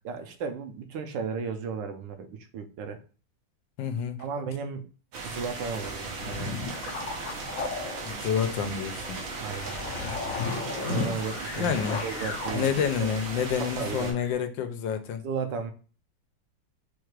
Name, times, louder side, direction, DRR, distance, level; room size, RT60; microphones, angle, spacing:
voice 1, 0.0-3.0 4.2-4.9 5.2-6.5 9.3-9.8 10.9-11.7 12.0-12.7 13.0-13.1 13.8-14.1 15.2-15.7, right 5 dB, 75° right, 6 dB, 1.3 m, -34 dB
voice 2, 3.8-4.2 8.1-9.2 11.6-12.0 12.5-15.2, left 7 dB, 85° left, 9 dB, 1.4 m, -28 dB
sound 1, 5.1-14.1, right 3 dB, 90° right, 1.8 m, -37 dB
sound 2, 5.7-13.6 14.2-14.3, left 4 dB, 60° left, 0.9 m, -35 dB
4.6 x 2.4 x 4.5 m, 0.37 s
omnidirectional pair, 2.1 m